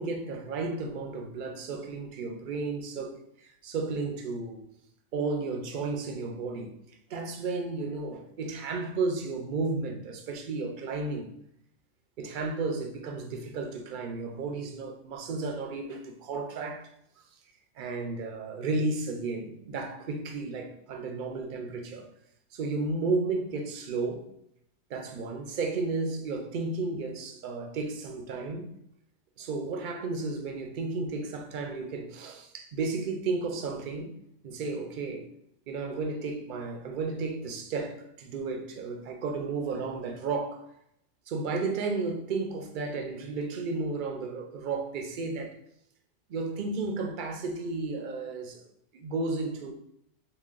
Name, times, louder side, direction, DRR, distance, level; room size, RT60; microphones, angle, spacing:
voice 1, 0.0-4.6 5.1-6.7 7.1-11.3 12.2-16.9 17.8-22.1 22.5-24.3 24.9-28.7 29.4-34.1 34.4-35.3 35.7-40.7 41.3-45.6 46.3-48.6 48.9-49.7, right 3 dB, 50° right, 0.6 m, -33 dB
6.9 x 2.4 x 2.5 m
omnidirectional pair, 1.3 m